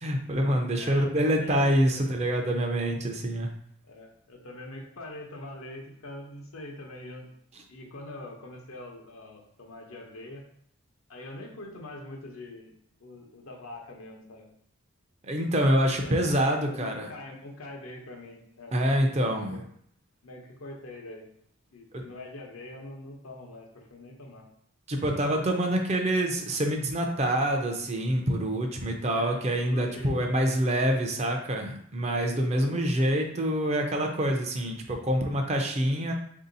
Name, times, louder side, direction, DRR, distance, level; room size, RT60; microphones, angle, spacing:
voice 1, 0.0-3.5 15.3-17.1 18.7-19.6 21.9-22.0 24.9-36.1, right 1 dB, 30° right, 3 dB, 0.5 m, -26 dB
voice 2, 0.8-2.0 3.9-7.3 7.7-10.4 11.1-12.7 13.0-14.5 15.8-16.2 16.6-18.7 19.5-19.6 20.2-21.3 21.7-24.5 29.1-29.4 29.7-30.1 32.5-32.7, left 1 dB, 80° left, 1 dB, 0.9 m, -43 dB
3.6 x 2.7 x 4.0 m, 0.68 s
head